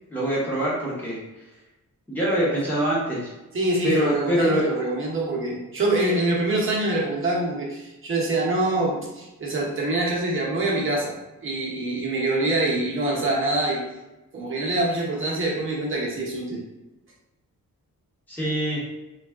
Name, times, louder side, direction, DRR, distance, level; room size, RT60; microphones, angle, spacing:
voice 1, 0.1-1.2 2.1-3.3 3.8-4.7 18.3-18.8, right 1 dB, 5° left, -8 dB, 1.0 m, -24 dB
voice 2, 3.5-11.2 11.4-13.8 14.3-16.6, right 2 dB, 40° right, -4 dB, 0.9 m, -25 dB
3.4 x 2.3 x 3.5 m, 1.0 s
wide cardioid pair, 165°, 32 cm